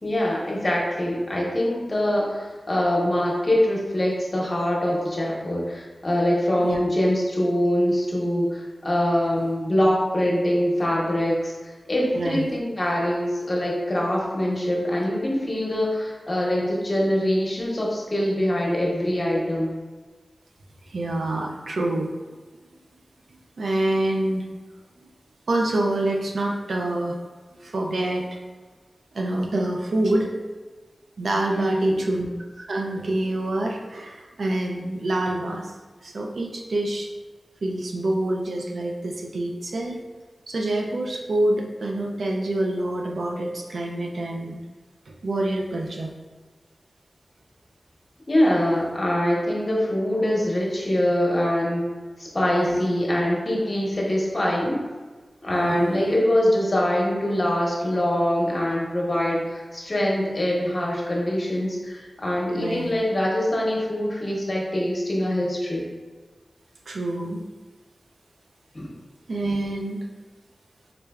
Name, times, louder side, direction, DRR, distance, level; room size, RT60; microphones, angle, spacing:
voice 1, 0.0-19.8 31.5-32.0 48.3-51.9 52.2-54.8 55.4-65.9 68.7-68.9, left 1 dB, 35° left, -3 dB, 0.8 m, -24 dB
voice 2, 12.1-12.5 20.9-22.1 23.3-24.5 25.0-25.1 25.5-27.2 27.6-28.4 29.1-30.3 31.2-32.3 32.6-35.7 36.0-37.1 37.6-40.0 40.5-44.6 45.1-46.1 52.6-52.8 55.5-55.9 62.5-62.9 66.9-67.4 69.3-70.1, right 1 dB, 90° right, 0 dB, 0.4 m, -26 dB
3.7 x 3.2 x 2.3 m, 1.4 s
wide cardioid pair, 80°, 0 cm